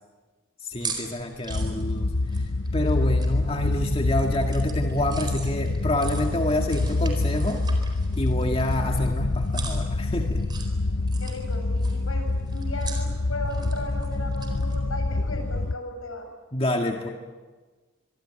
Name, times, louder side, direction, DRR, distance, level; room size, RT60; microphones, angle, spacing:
voice 1, 0.6-2.1 2.7-7.6 8.2-10.4 16.5-17.1, left 1 dB, 25° left, 2 dB, 2.0 m, -27 dB
sound 1, 0.7-14.8, right 4 dB, 20° right, 4.4 m, -42 dB
sound 2, 1.5-15.8, left 2 dB, 65° left, 0.8 m, -26 dB
voice 2, 11.2-16.3, left 1 dB, 85° left, 4 dB, 7.2 m, -36 dB
26.0 x 24.0 x 9.0 m, 1.3 s
head